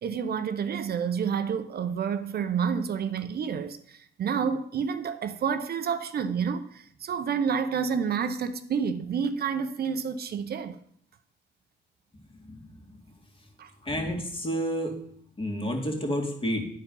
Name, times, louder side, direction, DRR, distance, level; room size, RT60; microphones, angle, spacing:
voice 1, 0.0-10.8 13.6-13.7, right 6 dB, 50° right, 0.6 m, -29 dB
voice 2, 12.1-12.8 13.8-15.0 15.4-16.6, equal, 25° left, 2.1 m, -30 dB
10.5 x 4.6 x 5.3 m
cardioid pair, 90°, 20 cm